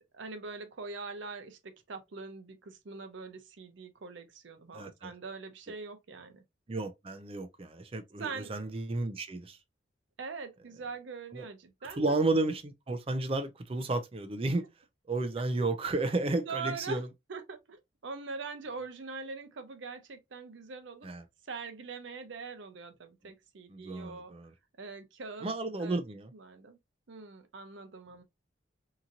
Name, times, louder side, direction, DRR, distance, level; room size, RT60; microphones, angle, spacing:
voice 1, 0.1-6.4 8.2-8.5 10.2-12.2 16.4-17.0 17.3-21.1 21.4-24.3 24.8-25.5 25.8-26.0 26.3-26.8 27.1-28.2, right 4 dB, 75° right, 0.6 m, -42 dB
voice 2, 4.7-5.1 6.7-9.6 11.3-11.4 12.0-14.7 15.1-17.1 21.0-21.2 23.7-24.5 25.4-26.3, right 2 dB, 30° right, 0.4 m, -32 dB
2.9 x 2.5 x 2.5 m
head